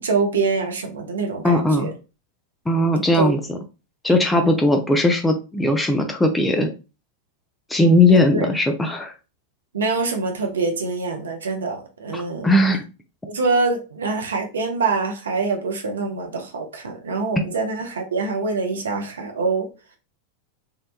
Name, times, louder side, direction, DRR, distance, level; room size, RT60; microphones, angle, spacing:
voice 1, 0.0-1.9 3.1-3.3 4.1-4.6 8.1-8.5 9.7-12.5 13.3-19.7, right 4 dB, 65° right, 0.5 m, -25 dB
voice 2, 1.4-1.9 2.7-3.6 4.0-6.7 7.7-9.1 12.1-12.8, left 1 dB, 5° left, 0.4 m, -18 dB
2.7 x 2.1 x 2.3 m
figure-of-eight pair, 90°, 0 cm